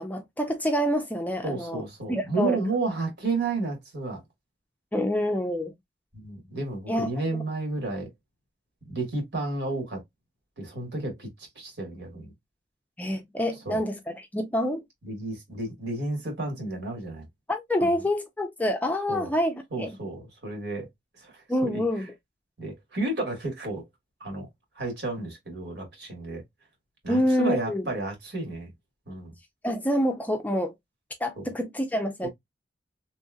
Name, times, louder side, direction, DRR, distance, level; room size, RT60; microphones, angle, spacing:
voice 1, 0.0-1.8 2.1-2.6 4.9-5.7 6.9-7.4 13.0-14.8 17.5-20.0 21.5-22.1 27.1-27.9 29.6-30.7 31.2-32.3, equal, 10° left, 0.4 m, -27 dB
voice 2, 1.4-4.2 6.1-8.1 8.8-10.0 10.6-11.3 11.5-12.3 13.6-13.8 15.0-17.2 17.8-18.0 19.1-19.3 19.7-20.9 21.2-21.8 22.6-23.8 24.2-24.5 24.8-26.4 27.0-28.7 29.1-29.3 31.4-31.5 32.2-32.3, right 3 dB, 70° right, 1.6 m, -32 dB
3.1 x 2.9 x 2.3 m
head